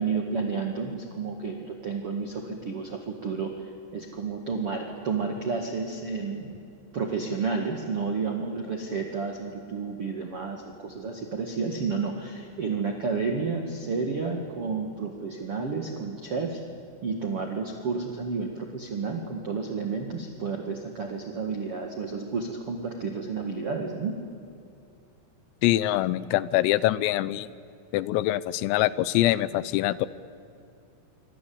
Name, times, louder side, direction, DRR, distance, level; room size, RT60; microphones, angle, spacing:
voice 1, 0.0-6.6 6.9-16.6 17.0-24.1, right 4 dB, 75° right, 3 dB, 1.3 m, -31 dB
voice 2, 25.6-27.5 27.9-30.1, left 15 dB, 85° left, 17 dB, 3.4 m, -24 dB
27.0 x 25.0 x 8.6 m, 2.6 s
omnidirectional pair, 6.0 m